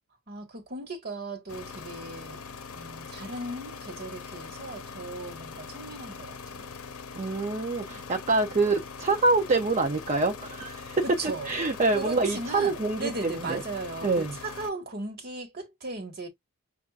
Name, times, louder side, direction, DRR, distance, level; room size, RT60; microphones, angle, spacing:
voice 1, 0.3-2.4 2.7-6.8 11.0-11.5 11.9-12.7 13.0-16.3, right 2 dB, 50° right, 1.6 m, -37 dB
sound 1, 1.5-14.7, left 5 dB, 85° left, 0.7 m, -42 dB
voice 2, 7.2-11.0 11.4-13.6 14.0-14.3, right 3 dB, 35° right, 0.6 m, -26 dB
5.9 x 2.4 x 2.4 m
head